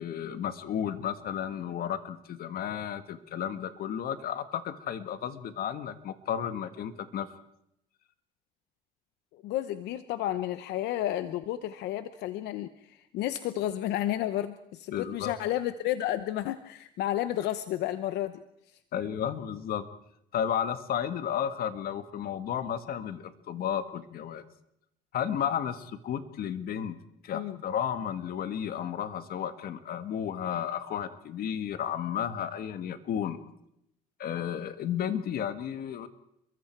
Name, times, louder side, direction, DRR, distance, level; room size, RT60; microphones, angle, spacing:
voice 1, 0.0-7.3 14.9-15.3 18.9-19.9 20.3-24.4 25.1-27.0 27.2-33.4 34.2-36.1, left 9 dB, 60° left, 10 dB, 1.8 m, -33 dB
voice 2, 9.3-18.4 27.3-27.6, left 13 dB, 85° left, 11 dB, 0.9 m, -32 dB
29.5 x 22.5 x 4.6 m, 0.78 s
cardioid pair, 110°, 17 cm